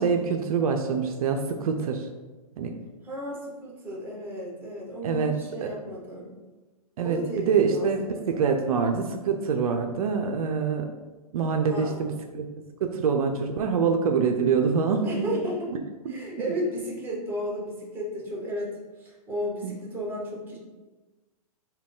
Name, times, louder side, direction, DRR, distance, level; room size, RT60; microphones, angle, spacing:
voice 1, 0.0-2.1 2.6-2.8 5.0-5.4 5.6-5.7 7.0-10.9 11.3-12.5 12.8-15.1 19.6-19.7, right 6 dB, 70° right, 4 dB, 0.4 m, -25 dB
voice 2, 3.0-6.3 7.0-8.5 11.6-12.0 15.0-15.7 16.1-18.7 19.0-20.6, equal, 10° right, -4 dB, 1.2 m, -33 dB
3.6 x 2.3 x 3.7 m, 1.2 s
hypercardioid pair, 130°, 19 cm